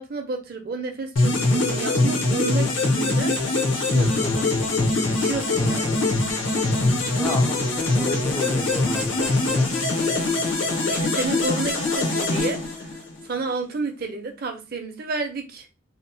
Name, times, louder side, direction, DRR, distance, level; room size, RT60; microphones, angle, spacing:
voice 1, 0.0-3.3 3.9-4.3 5.0-6.1 10.9-12.9 13.3-15.7, right 3 dB, 50° right, 4 dB, 0.5 m, -31 dB
sound 1, 1.2-13.2, left 2 dB, 70° left, 0.7 m, -23 dB
voice 2, 4.2-4.5 5.5-5.8 7.2-9.7, left 1 dB, 10° left, 3 dB, 0.4 m, -32 dB
2.8 x 2.0 x 2.7 m, 0.30 s
head